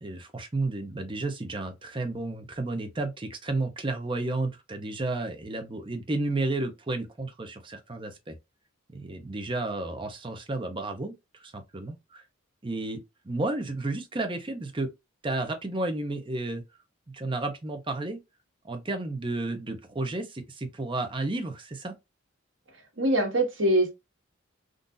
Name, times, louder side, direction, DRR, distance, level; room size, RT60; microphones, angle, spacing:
voice 1, 0.0-8.3 8.9-12.2 12.6-14.9 15.2-16.6 17.1-18.2 18.6-21.9, right 2 dB, 25° right, 0.6 m, -32 dB
voice 2, 23.0-23.9, right 1 dB, 60° right, 1.4 m, -23 dB
3.8 x 2.5 x 2.5 m
head